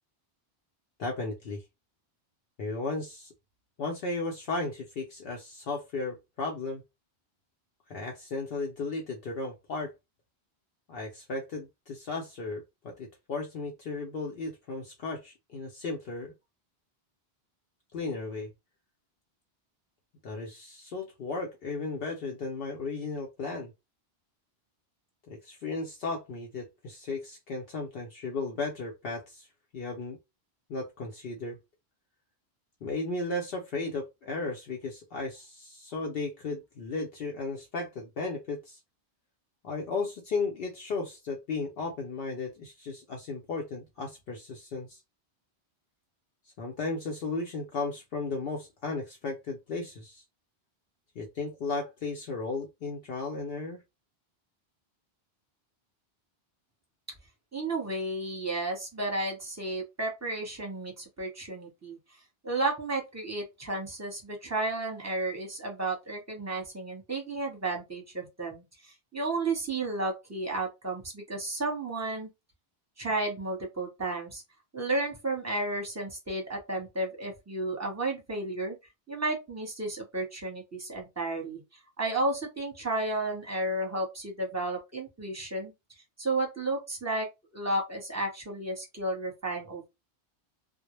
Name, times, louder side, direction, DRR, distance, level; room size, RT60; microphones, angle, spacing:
voice 1, 1.0-1.6 2.6-3.3 3.8-6.8 7.9-9.9 10.9-16.3 17.9-18.5 20.2-23.7 25.3-29.5 29.7-30.2 30.7-31.6 32.8-38.8 39.6-45.0 46.6-50.2 51.2-53.8, left 3 dB, 65° left, 0.7 m, -35 dB
voice 2, 57.5-62.0 62.4-72.3 73.0-74.4 74.7-78.8 79.1-81.6 82.0-85.7 86.2-87.3 87.5-89.9, right 2 dB, 15° right, 0.8 m, -32 dB
2.1 x 2.0 x 2.9 m
omnidirectional pair, 1.1 m